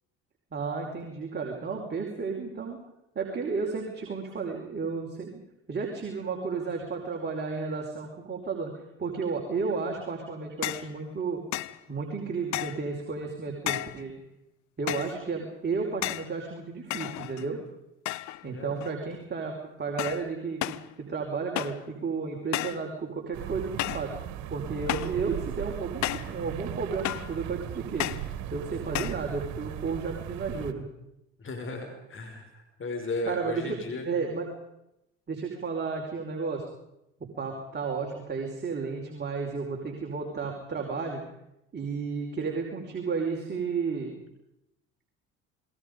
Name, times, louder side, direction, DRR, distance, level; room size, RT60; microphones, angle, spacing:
voice 1, 0.5-2.8 3.1-5.4 5.7-8.7 9.0-11.4 11.9-14.1 14.8-17.6 18.4-19.5 19.8-24.1 24.5-28.1 28.5-30.9 33.3-33.8 34.0-34.5 35.3-36.6 37.2-41.2 41.7-44.1, right 4 dB, 35° right, 1 dB, 5.1 m, -32 dB
sound 1, 10.6-10.9 11.5-11.8 12.5-12.9 13.7-14.0 14.9-15.2 16.0-16.3 16.9-17.6 18.1-18.4 18.8-19.2 20.0-20.3 20.6-20.9 21.6-21.9 22.5-22.9 23.8-24.1 24.9-25.2 26.0-26.4 27.0-27.4 28.0-28.3 28.9-29.2, left 16 dB, 65° left, 0.9 m, -33 dB
voice 2, 18.5-18.8 31.4-34.1, left 2 dB, 40° left, 4 dB, 5.9 m, -35 dB
sound 2, 23.3-30.7, right 11 dB, 70° right, 2.2 m, -37 dB
27.5 x 21.0 x 5.4 m, 0.84 s
supercardioid pair, 70°, 30 cm